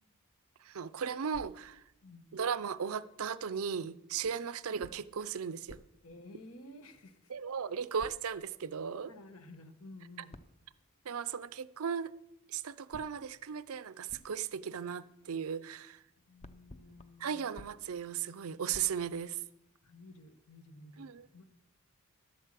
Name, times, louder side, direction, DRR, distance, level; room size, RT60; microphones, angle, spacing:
voice 1, 0.6-1.8 2.3-5.8 7.3-9.1 11.0-12.1 12.5-16.0 17.2-19.4 21.0-21.3, right 7 dB, 75° right, 0.5 m, -36 dB
sound 1, 1.3-2.5 4.2-7.1 8.0-8.8 10.3-11.4 12.9-15.8 16.1-19.7, left 1 dB, 30° left, 0.6 m, -57 dB
voice 2, 6.0-7.3 9.1-10.4 16.2-17.7 19.8-21.4, left 2 dB, 85° left, 1.3 m, -53 dB
12.0 x 8.2 x 7.5 m
head